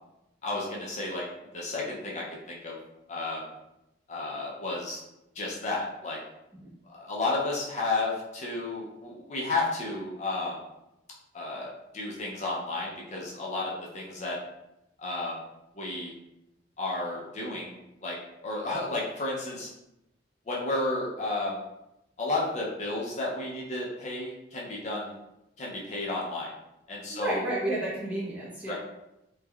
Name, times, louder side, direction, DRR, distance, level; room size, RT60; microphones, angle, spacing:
voice 1, 0.4-1.2 1.5-2.8 3.1-3.4 4.1-5.0 5.4-6.2 6.9-10.6 11.3-14.4 15.0-15.4 15.8-16.1 16.8-17.8 18.0-18.2 18.4-19.7 20.5-21.6 22.2-25.2 25.6-26.5 26.9-27.4 28.7-28.8, left 2 dB, 35° left, -4 dB, 0.4 m, -32 dB
voice 2, 27.1-28.7, right 1 dB, 10° right, -6 dB, 0.6 m, -31 dB
3.2 x 2.1 x 2.2 m, 0.89 s
head